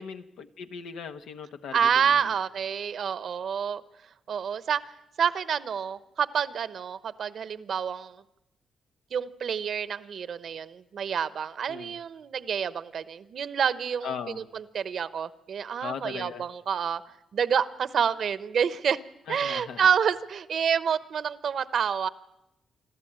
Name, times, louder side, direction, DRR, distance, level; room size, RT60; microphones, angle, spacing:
voice 1, 0.0-2.3 11.7-12.0 14.0-14.4 15.8-16.4 19.3-19.9, left 7 dB, 85° left, 1.1 m, -39 dB
voice 2, 1.7-3.8 4.3-8.2 9.1-19.0 19.3-22.1, right 7 dB, 65° right, 0.9 m, -28 dB
27.5 x 13.0 x 8.8 m
cardioid pair, 80°, 0 cm